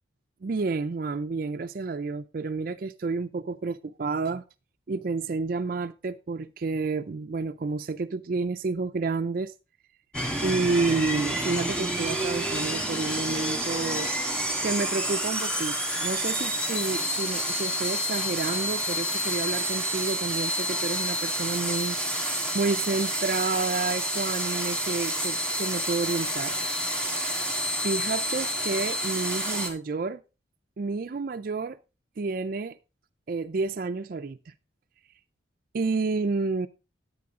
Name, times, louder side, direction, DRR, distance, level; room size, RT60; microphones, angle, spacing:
voice 1, 0.4-4.4 4.9-9.5 10.4-14.1 14.6-15.8 16.0-26.8 27.8-30.2 30.8-31.8 32.2-32.8 33.3-34.5 35.7-36.7, right 4 dB, 45° right, 0.4 m, -30 dB
sound 1, 10.1-29.7, equal, 5° left, 1.6 m, -29 dB
10.5 x 8.5 x 3.6 m
head